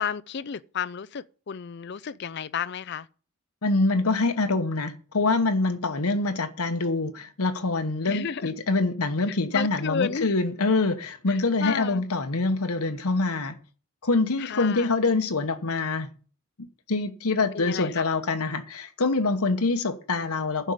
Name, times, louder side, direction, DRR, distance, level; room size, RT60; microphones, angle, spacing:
voice 1, 0.0-3.1 8.1-8.5 9.3-10.3 11.3-12.0 14.4-14.9 17.5-18.0, left 7 dB, 50° left, 0.4 m, -32 dB
voice 2, 3.6-13.6 14.0-16.1 16.9-20.7, left 3 dB, 85° left, 1.1 m, -25 dB
11.0 x 5.1 x 8.2 m
head